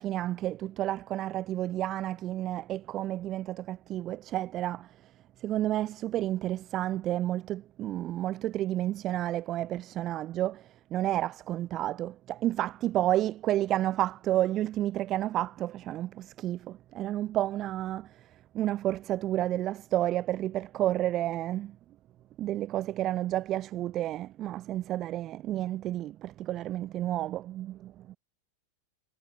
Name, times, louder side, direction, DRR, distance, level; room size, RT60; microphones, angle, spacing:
voice 1, 0.0-5.1 5.4-21.8 22.4-28.2, right 13 dB, 25° right, 1.1 m, -31 dB
supercardioid pair, 170°, 0 cm